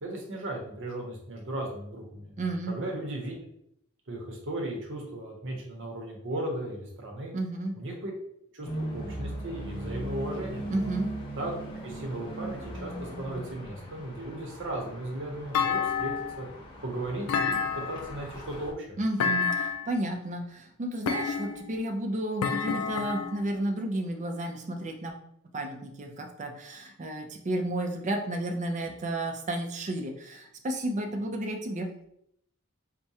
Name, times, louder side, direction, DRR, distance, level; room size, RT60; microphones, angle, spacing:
voice 1, 0.0-2.3 2.7-3.4 4.1-7.3 7.8-8.1 8.5-10.7 11.4-11.5 11.8-16.5 16.8-19.0, right 1 dB, 60° right, 1 dB, 0.9 m, -36 dB
voice 2, 2.4-2.8 7.3-7.8 10.7-11.1 19.0-25.1 25.5-31.9, right 1 dB, 35° right, 4 dB, 0.5 m, -32 dB
sound 1, 8.6-18.7, right 1 dB, 20° left, 0.9 m, -39 dB
Thump thud, 15.5-16.5 17.3-18.2 19.2-20.0 21.1-21.8 22.4-23.4, left 6 dB, 80° left, 0.3 m, -29 dB
4.6 x 2.2 x 2.7 m, 0.73 s
head